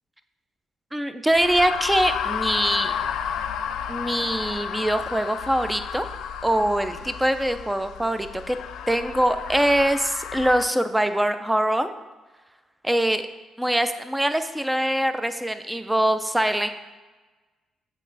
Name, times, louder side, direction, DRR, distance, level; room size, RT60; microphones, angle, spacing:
voice 1, 0.9-2.9 3.9-6.1 6.4-8.6 8.9-11.9 12.8-13.2 13.6-16.7, right 1 dB, 5° right, 9 dB, 0.4 m, -23 dB
sound 1, 1.3-10.7, left 8 dB, 80° left, 0.3 m, -32 dB
8.3 x 4.1 x 3.9 m, 1.2 s
cardioid pair, 90°, 0 cm